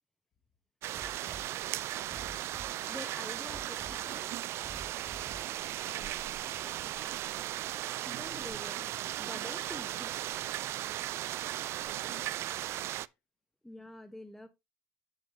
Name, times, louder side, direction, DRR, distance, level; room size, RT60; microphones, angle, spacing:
voice 1, 0.8-1.8 5.6-7.6 10.6-10.8 11.3-13.2, left 8 dB, 50° left, 2.3 m, -59 dB
sound 1, 0.8-13.1, right 13 dB, 55° right, 0.4 m, -37 dB
sound 2, 1.0-6.0, right 3 dB, 40° right, 2.0 m, -50 dB
voice 2, 2.5-4.4 8.1-10.2 11.4-11.8 13.6-14.5, left 1 dB, 5° left, 1.1 m, -47 dB
9.7 x 6.4 x 3.0 m
supercardioid pair, 85°, 5 cm